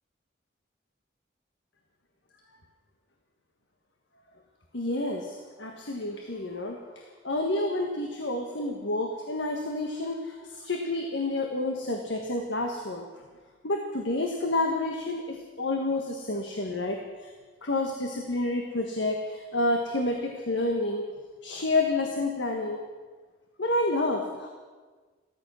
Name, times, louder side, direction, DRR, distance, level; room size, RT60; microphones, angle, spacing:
voice 1, 4.7-13.1 13.6-17.3 17.6-21.1 21.4-22.8 23.6-24.5, left 2 dB, 80° left, 3 dB, 1.5 m, -29 dB
15.0 x 14.0 x 6.2 m, 1.4 s
head